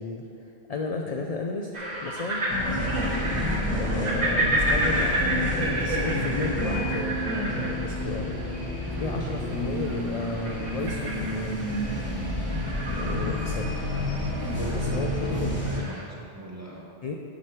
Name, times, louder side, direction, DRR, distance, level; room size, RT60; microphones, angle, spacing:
voice 1, 0.0-1.7 2.0-2.4 3.6-5.2 5.5-8.4 9.0-12.3 12.9-13.8 14.8-15.7 17.0-17.2, left 4 dB, 65° left, 1 dB, 0.3 m, -34 dB
sound 1, 1.7-16.0, right 1 dB, 40° right, 1.0 m, -32 dB
sound 2, 2.5-15.8, equal, 10° left, 0.9 m, -29 dB
sound 3, 8.8-15.0, right 1 dB, 90° left, 2.1 m, -44 dB
voice 2, 14.4-17.0, right 2 dB, 25° right, -2 dB, 0.4 m, -38 dB
7.6 x 4.5 x 4.8 m, 2.5 s
omnidirectional pair, 1.2 m